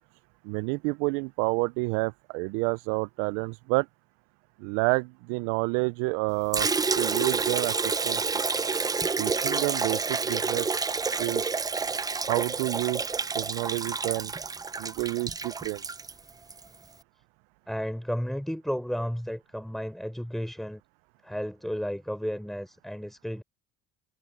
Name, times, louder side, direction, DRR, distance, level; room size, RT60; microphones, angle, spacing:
voice 1, 0.4-3.9 4.6-6.7 7.0-8.4 9.2-10.8 11.2-11.5 12.2-13.1 13.3-14.3 14.8-15.8, right 27 dB, 80° right, 0.4 m, -29 dB
Liquid, 6.5-16.6, right 4 dB, 20° right, 0.6 m, -29 dB
voice 2, 17.7-20.8 21.2-23.4, equal, ahead, 4.8 m, -33 dB
supercardioid pair, 80°, 20 cm